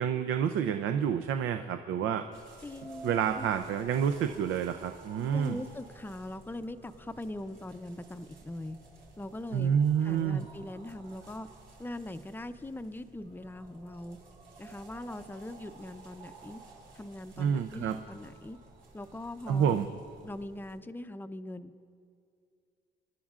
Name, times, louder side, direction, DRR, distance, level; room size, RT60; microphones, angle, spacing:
voice 1, 0.0-2.3 3.0-5.6 9.5-10.4 17.4-18.0 19.5-19.9, right 8 dB, 80° right, 8 dB, 0.5 m, -28 dB
sound 1, 2.3-20.8, right 3 dB, 65° right, 3.2 m, -53 dB
voice 2, 2.6-3.5 5.3-8.8 9.2-9.7 10.0-11.5 11.8-14.2 14.6-16.6 16.9-18.6 18.9-19.9 20.2-21.7, left 1 dB, 10° left, 10 dB, 0.5 m, -41 dB
26.0 x 11.5 x 2.4 m, 2.3 s
cardioid pair, 90°, 20 cm